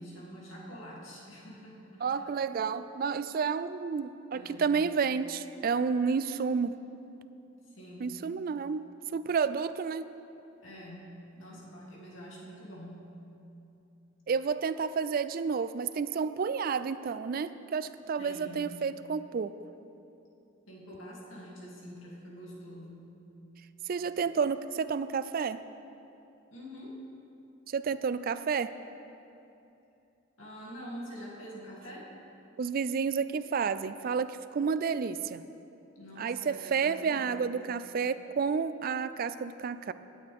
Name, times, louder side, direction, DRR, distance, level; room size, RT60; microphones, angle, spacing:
voice 1, 0.0-2.3 4.3-4.7 7.8-8.1 10.6-11.1 11.4-13.0 18.2-18.6 20.7-23.1 26.5-27.0 30.4-32.1 35.9-37.5, equal, 85° left, -5 dB, 2.8 m, -46 dB
voice 2, 2.0-6.8 8.0-8.8 9.1-10.1 14.3-19.6 23.9-25.6 27.7-28.7 32.6-35.4 36.2-39.9, right 5 dB, 50° right, 13 dB, 0.3 m, -30 dB
18.0 x 9.3 x 3.5 m, 2.8 s
head